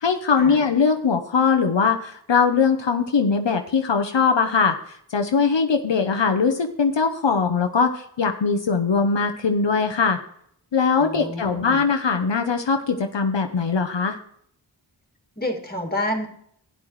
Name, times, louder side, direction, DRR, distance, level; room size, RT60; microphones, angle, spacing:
voice 1, 0.0-4.8 5.1-10.2 10.7-14.2, left 5 dB, 75° left, 5 dB, 0.8 m, -21 dB
voice 2, 11.0-11.8 15.4-16.3, left 1 dB, 20° left, -1 dB, 2.3 m, -28 dB
12.5 x 9.5 x 3.1 m, 0.67 s
wide cardioid pair, 45°, 43 cm